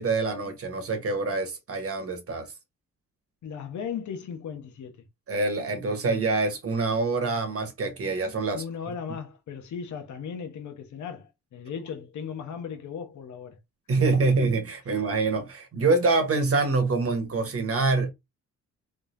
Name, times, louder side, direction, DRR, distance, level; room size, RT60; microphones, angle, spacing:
voice 1, 0.0-2.5 5.3-8.6 13.9-18.1, right 3 dB, 45° right, 1.3 m, -25 dB
voice 2, 3.4-5.0 8.5-13.6 14.0-14.1, left 7 dB, 65° left, 1.1 m, -37 dB
3.8 x 3.3 x 2.6 m
cardioid pair, 90°, 31 cm